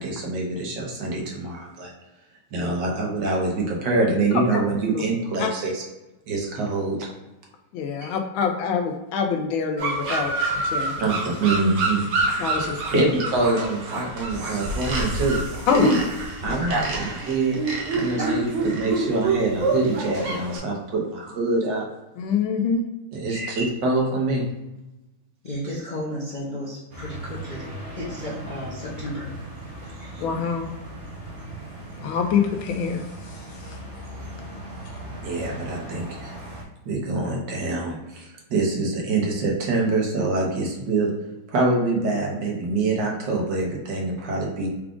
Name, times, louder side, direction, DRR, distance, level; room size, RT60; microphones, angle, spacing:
voice 1, 0.0-1.9 2.5-5.8 6.3-7.0 8.0-8.1 11.0-12.1 12.9-15.4 15.7-16.0 16.4-17.6 17.9-21.8 23.1-24.5 30.1-30.2 35.2-36.4 36.8-41.1 41.5-44.7, right 3 dB, 65° right, -1 dB, 1.5 m, -25 dB
voice 2, 7.7-10.9 12.4-13.0 15.7-15.9 22.2-22.8 30.2-30.7 32.0-33.0, left 6 dB, 80° left, 4 dB, 1.4 m, -25 dB
sound 1, 9.8-20.6, right 3 dB, 85° right, 1.9 m, -27 dB
voice 3, 25.4-27.7 27.9-29.3 30.0-30.1, left 1 dB, 50° left, -7 dB, 0.5 m, -33 dB
sound 2, 26.9-36.6, right 1 dB, 45° right, 0.8 m, -38 dB
4.8 x 2.4 x 3.6 m, 0.99 s
omnidirectional pair, 2.3 m